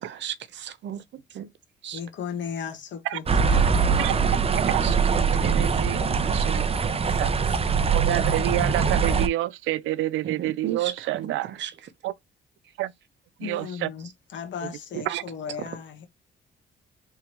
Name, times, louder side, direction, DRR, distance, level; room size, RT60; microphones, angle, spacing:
voice 1, 0.0-1.5 1.8-2.0 4.6-5.8 6.1-6.5 7.0-7.2 10.2-11.9 12.6-12.7 14.9-15.2 15.6-15.8, right 10 dB, 65° right, 0.8 m, -36 dB
voice 2, 1.9-4.5 13.4-16.1, left 7 dB, 65° left, 1.4 m, -36 dB
sound 1, 3.3-9.3, right 5 dB, 30° right, 0.7 m, -22 dB
voice 3, 5.4-6.0 6.4-6.6 7.2-7.3 7.9-11.5 12.0-12.1 12.8-12.9 13.4-13.9 14.6-14.7 15.1-15.2, right 15 dB, 85° right, 0.4 m, -28 dB
3.6 x 3.1 x 3.0 m
cardioid pair, 90°, 20 cm